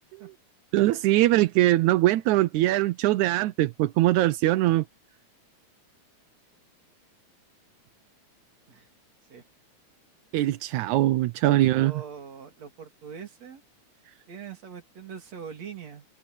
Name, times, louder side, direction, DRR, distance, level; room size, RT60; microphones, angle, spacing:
voice 1, 0.7-4.8 10.3-11.9, right 16 dB, 80° right, 2.1 m, -22 dB
voice 2, 11.8-13.6 14.3-16.1, right 7 dB, 60° right, 4.3 m, -42 dB
omnidirectional pair, 3.4 m